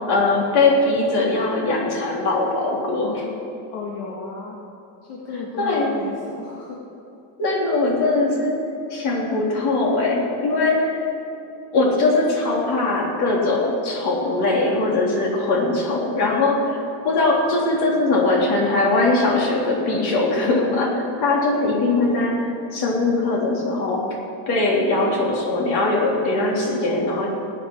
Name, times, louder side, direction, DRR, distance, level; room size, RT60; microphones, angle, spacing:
voice 1, 0.1-3.2 5.6-6.0 7.4-8.5 8.9-11.0 11.7-24.2 24.5-27.3, left 2 dB, 55° left, -2 dB, 3.4 m, -21 dB
voice 2, 3.7-4.6 5.0-6.8, left 4 dB, 70° left, -2 dB, 1.9 m, -33 dB
19.0 x 9.5 x 4.6 m, 2.8 s
cardioid pair, 155°, 45 cm